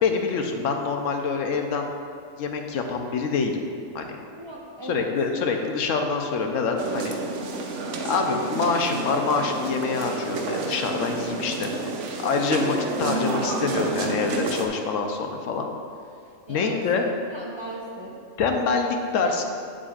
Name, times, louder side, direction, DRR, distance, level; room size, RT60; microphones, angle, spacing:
voice 1, 0.0-1.9 2.4-3.6 3.9-4.2 4.8-7.2 8.0-11.9 12.2-15.7 16.5-17.0 18.4-19.4, left 4 dB, 75° left, 3 dB, 1.0 m, -26 dB
voice 2, 4.3-5.1 16.5-18.2, right 1 dB, 30° right, -4 dB, 0.6 m, -38 dB
sound 1, 6.8-14.7, right 3 dB, 70° right, 1.0 m, -29 dB
8.5 x 7.6 x 2.4 m, 2.4 s
omnidirectional pair, 1.3 m